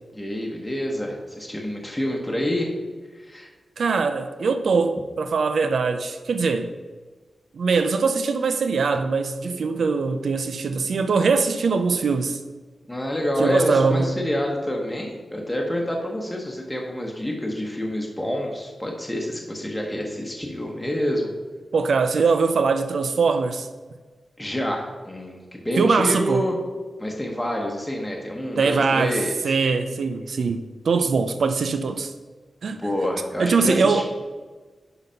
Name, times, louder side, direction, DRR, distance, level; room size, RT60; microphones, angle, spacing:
voice 1, 0.1-2.7 3.1-3.5 12.9-21.3 24.4-26.6 27.0-29.4 32.8-34.0, equal, 5° left, 1.1 m, -27 dB
voice 2, 3.8-6.7 7.5-12.4 13.4-14.2 21.7-23.7 25.8-26.4 28.6-32.1 32.6-32.9 33.4-34.0, right 4 dB, 75° right, 0.5 m, -22 dB
10.5 x 4.0 x 5.7 m
wide cardioid pair, 170°, 0 cm